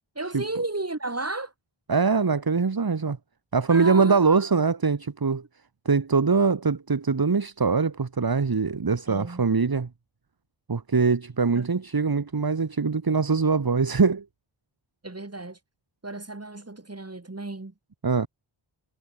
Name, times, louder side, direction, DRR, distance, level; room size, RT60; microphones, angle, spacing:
voice 1, 0.1-1.5 3.7-4.3 9.1-9.5 11.5-11.7 15.0-15.6 16.0-17.7, right 2 dB, 30° right, 4.3 m, -33 dB
voice 2, 1.9-3.2 3.5-5.4 5.9-9.9 10.7-14.2 18.0-18.3, right 4 dB, 45° right, 2.0 m, -23 dB
cardioid pair, 50°, 49 cm